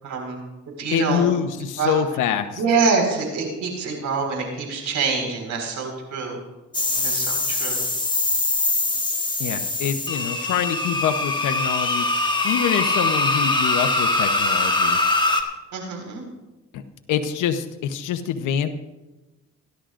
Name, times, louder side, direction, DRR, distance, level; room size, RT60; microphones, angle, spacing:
voice 1, 0.0-0.4 0.8-1.3 1.8-2.0 2.6-6.4 7.0-7.8 15.7-16.2, right 4 dB, 75° right, 2 dB, 4.7 m, -25 dB
voice 2, 0.9-2.6 9.4-12.1 12.4-15.0 16.7-16.8 17.1-18.7, left 8 dB, 90° left, 7 dB, 0.9 m, -25 dB
sound 1, 6.7-15.4, left 2 dB, 15° left, 1.6 m, -22 dB
27.0 x 11.5 x 2.5 m, 1.1 s
cardioid pair, 90°, 30 cm